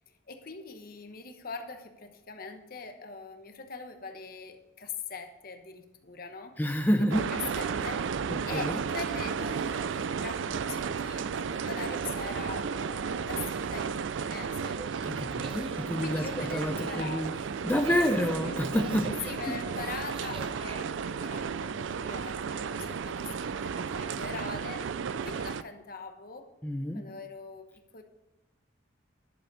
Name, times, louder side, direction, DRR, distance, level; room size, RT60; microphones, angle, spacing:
voice 1, 0.3-6.6 7.2-7.3 7.5-8.2 8.4-14.8 16.0-17.4 18.4-18.6 19.3-24.9 25.2-26.5 26.9-27.7 27.9-28.0, left 4 dB, 50° left, 6 dB, 1.1 m, -42 dB
voice 2, 6.6-7.3 8.3-8.8 15.0-17.3 17.6-19.3 26.6-27.0, equal, 10° left, 5 dB, 0.5 m, -29 dB
sound 1, 7.1-25.6, right 6 dB, 75° right, 0.4 m, -33 dB
sound 2, 14.7-20.8, right 2 dB, 25° right, 0.9 m, -45 dB
11.0 x 7.1 x 5.4 m, 1.0 s
head